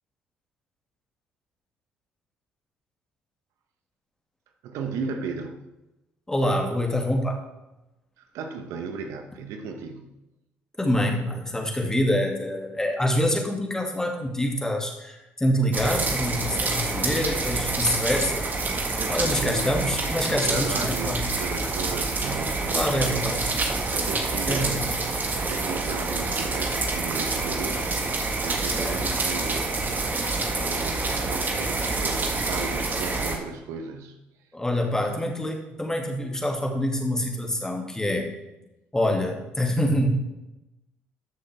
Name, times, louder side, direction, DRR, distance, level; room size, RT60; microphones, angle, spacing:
voice 1, 4.6-5.6 8.2-10.1 19.0-19.8 20.3-23.2 23.7-27.9 28.4-30.1 30.6-34.2 34.8-35.4, right 5 dB, 70° right, 6 dB, 1.0 m, -35 dB
voice 2, 6.3-7.4 10.8-18.4 19.1-21.2 22.7-23.5 24.5-24.9 28.7-29.1 34.5-38.3 38.9-40.1, left 1 dB, 10° left, 1 dB, 2.3 m, -26 dB
sound 1, 15.7-33.4, right 3 dB, 35° right, 1.7 m, -27 dB
13.5 x 6.5 x 3.5 m, 0.97 s
hypercardioid pair, 60°, 5 cm